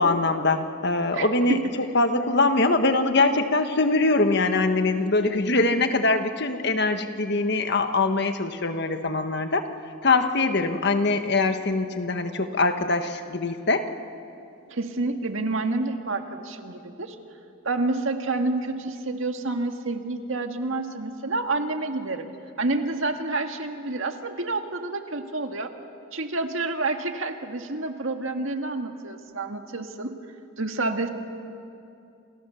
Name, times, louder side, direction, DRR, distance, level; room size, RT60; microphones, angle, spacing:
voice 1, 0.0-1.6 1.9-9.6 10.0-13.8, left 3 dB, 55° left, 7 dB, 1.5 m, -23 dB
voice 2, 1.1-1.7 14.7-17.2 17.6-22.3 22.6-25.7 26.1-30.1 30.6-31.1, right 2 dB, 70° right, 5 dB, 1.9 m, -28 dB
28.5 x 28.5 x 7.1 m, 2.6 s
head